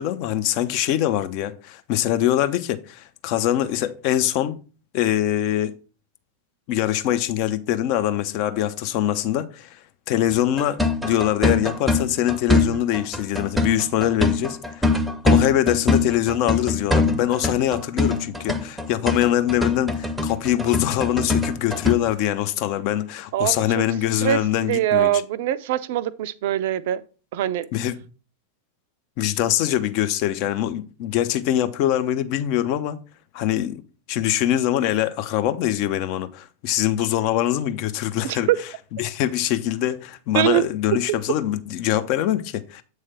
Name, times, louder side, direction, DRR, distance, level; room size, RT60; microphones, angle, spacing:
voice 1, 0.0-4.6 4.9-5.7 6.7-9.8 10.1-14.9 15.2-25.2 27.7-28.0 29.2-33.0 33.3-33.8 34.1-38.5 39.0-42.8, left 12 dB, 45° left, 0.6 m, -23 dB
sound 1, 10.3-21.9, left 3 dB, 5° right, 0.7 m, -22 dB
voice 2, 23.3-23.8 24.2-27.0 27.3-27.7 38.2-38.6 40.3-40.6, right 13 dB, 50° right, 0.4 m, -23 dB
7.9 x 3.3 x 5.5 m
figure-of-eight pair, 90°, 0 cm